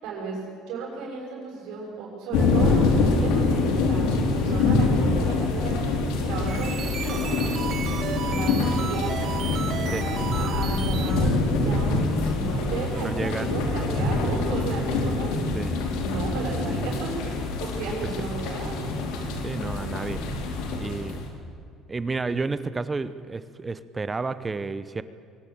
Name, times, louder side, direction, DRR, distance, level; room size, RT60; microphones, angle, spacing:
voice 1, 0.0-7.5 8.2-9.5 10.4-15.6 16.0-18.8, right 4 dB, 70° right, -3 dB, 6.5 m, -34 dB
sound 1, 2.3-21.3, left 3 dB, 90° left, 4.0 m, -25 dB
sound 2, 6.3-11.4, right 8 dB, 40° right, 1.9 m, -34 dB
voice 2, 13.0-13.5 15.5-15.8 19.4-20.2 20.8-21.2 21.9-25.0, right 4 dB, 15° right, 14 dB, 0.8 m, -31 dB
23.0 x 19.0 x 8.7 m, 2.3 s
cardioid pair, 165°, 0 cm